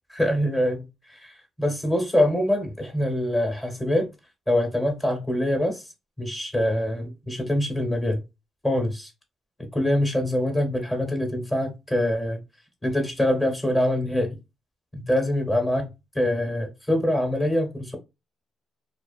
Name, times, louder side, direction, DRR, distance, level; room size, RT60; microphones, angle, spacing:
voice 1, 0.2-4.1 4.5-5.8 6.2-8.2 8.6-9.1 9.7-12.4 12.8-14.4 14.9-15.9 16.1-18.0, left 1 dB, 15° left, 1.0 m, -24 dB
2.4 x 2.3 x 2.4 m
cardioid pair, 80°, 0 cm